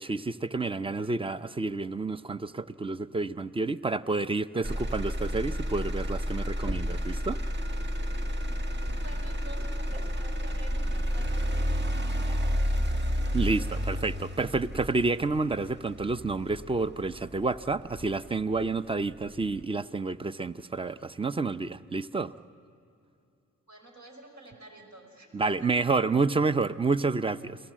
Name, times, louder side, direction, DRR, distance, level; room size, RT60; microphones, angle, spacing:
voice 1, 0.0-7.4 13.3-22.3 25.3-27.6, right 3 dB, 20° right, 14 dB, 0.6 m, -29 dB
Motor vehicle (road), 4.6-18.6 19.1-19.6, equal, 35° right, 1.3 m, -31 dB
voice 2, 9.0-11.8 12.1-12.9 23.7-25.9, right 1 dB, 70° right, 2 dB, 5.3 m, -49 dB
29.0 x 18.0 x 7.5 m, 2.6 s
cardioid pair, 65°, 31 cm